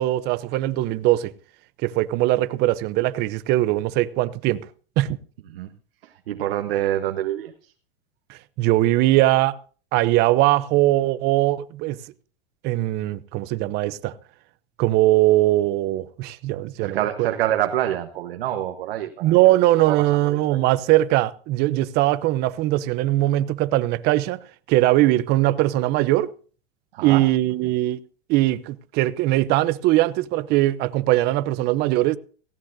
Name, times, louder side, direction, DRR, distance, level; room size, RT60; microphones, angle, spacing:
voice 1, 0.0-1.3 1.8-4.6 5.0-5.2 8.3-9.6 9.9-12.0 12.6-14.1 14.8-17.0 19.2-24.4 24.7-26.3 27.0-28.0 28.3-32.2, right 16 dB, 35° right, 0.7 m, -20 dB
voice 2, 6.0-7.7 16.8-19.5 19.9-20.6 26.9-27.2, right 12 dB, 75° right, 1.3 m, -27 dB
17.5 x 16.0 x 2.7 m
supercardioid pair, 140°, 29 cm